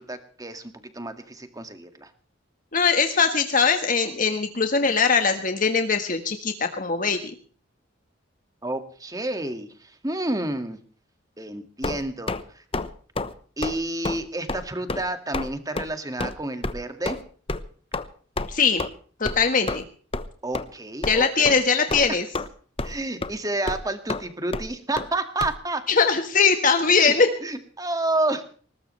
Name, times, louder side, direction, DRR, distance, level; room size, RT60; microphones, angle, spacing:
voice 1, 0.0-2.1 8.6-10.8 11.4-12.6 13.6-17.2 20.4-21.6 22.8-25.8 26.9-27.1 27.4-28.4, right 2 dB, 20° right, 8 dB, 2.0 m, -30 dB
voice 2, 2.7-7.2 18.5-18.8 19.2-19.8 21.1-22.2 25.9-27.3, left 5 dB, 45° left, 6 dB, 1.5 m, -21 dB
sound 1, 11.8-12.4 12.7-12.9 13.1-13.3 13.6-13.8 14.0-14.2 14.5-14.6 14.9-15.0 15.3-15.5 15.8-15.9 16.2-16.3 16.6-16.7 17.0-17.2 17.5-17.6 17.9-18.0 18.4-18.5 18.8-18.9 19.2-19.4 19.7-19.8 20.1-20.3 20.5-20.6 21.0-21.2 21.4-21.6 21.9-22.5 22.8-23.0 23.2-23.3 23.7-23.8 24.1-24.2 24.5-24.6 25.0-25.1 25.4-25.5, left 2 dB, 30° left, 1.0 m, -28 dB
20.5 x 19.0 x 3.2 m, 0.43 s
head